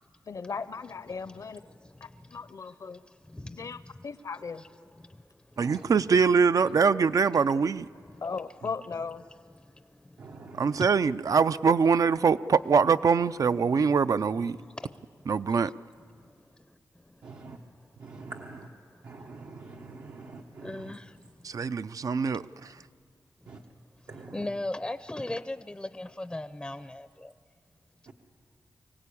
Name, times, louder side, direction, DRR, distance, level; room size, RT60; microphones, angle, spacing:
voice 1, 0.3-1.6 2.0-3.0 3.5-4.6 8.2-9.2, left 5 dB, 60° left, 14 dB, 0.7 m, -37 dB
voice 2, 1.8-2.4 2.6-3.0 3.3-3.9 5.0-5.2 9.6-10.4 10.8-10.9 14.6-14.9 17.1-17.2 20.6-21.2 24.3-26.9, left 1 dB, 15° left, 12 dB, 0.5 m, -38 dB
voice 3, 5.6-7.9 10.6-14.6 15.3-15.7 21.4-22.4, right 5 dB, 60° right, 14 dB, 0.5 m, -23 dB
voice 4, 10.2-10.8 17.2-17.6 18.0-18.7 19.0-20.9 23.5-23.6 24.1-24.5 28.1-28.2, right 3 dB, 80° right, 0 dB, 1.2 m, -45 dB
24.5 x 17.0 x 8.5 m, 2.2 s
wide cardioid pair, 85°, 6 cm